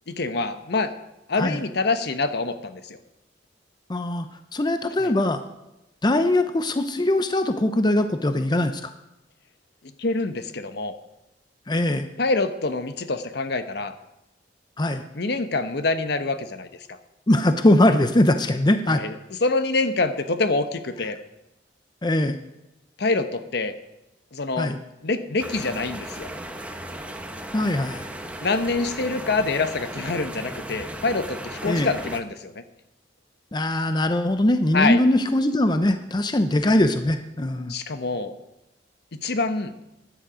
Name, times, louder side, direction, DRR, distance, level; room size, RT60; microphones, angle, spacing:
voice 1, 0.1-0.9 1.3-3.0 5.0-5.1 10.0-10.9 12.2-13.9 15.1-17.0 18.9-19.1 19.4-21.2 23.0-23.7 24.3-24.7 25.0-26.3 28.4-32.6 34.7-35.0 37.7-38.3 39.2-39.8, left 3 dB, 65° left, 10 dB, 1.0 m, -26 dB
voice 2, 3.9-4.3 4.5-5.4 6.0-8.9 11.7-12.1 14.8-15.0 17.3-19.0 22.0-22.4 24.6-24.8 27.5-28.1 31.6-31.9 33.5-37.7, left 1 dB, 25° left, 9 dB, 0.6 m, -21 dB
sound 1, 25.4-32.2, right 1 dB, 10° right, 0.9 m, -36 dB
15.0 x 10.5 x 5.0 m, 0.93 s
head